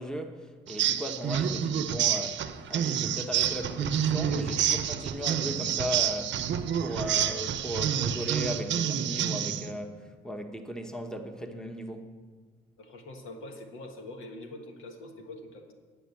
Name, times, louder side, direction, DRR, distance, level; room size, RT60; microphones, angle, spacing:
voice 1, 0.0-6.4 6.8-12.1, equal, 5° left, 0.9 m, -37 dB
sound 1, 0.7-9.7, right 9 dB, 70° right, 0.7 m, -28 dB
voice 2, 12.8-15.7, left 2 dB, 85° left, 1.5 m, -44 dB
10.5 x 6.0 x 8.2 m
cardioid pair, 90°, 20 cm